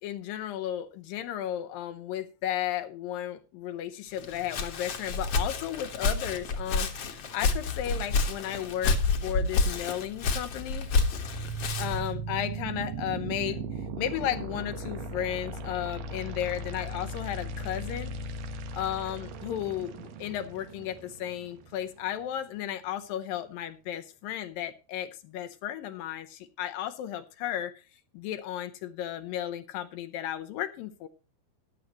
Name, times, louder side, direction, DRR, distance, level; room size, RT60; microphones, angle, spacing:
voice 1, 0.0-10.9 11.8-13.6 14.0-18.1 18.7-27.7 28.1-31.1, left 11 dB, 75° left, 9 dB, 2.3 m, -34 dB
Walk footsteps, 4.2-12.1, left 4 dB, 55° left, 1.9 m, -29 dB
sound 1, 10.2-22.2, right 3 dB, 85° right, 3.2 m, -38 dB
14.5 x 11.0 x 3.0 m, 0.32 s
omnidirectional pair, 4.4 m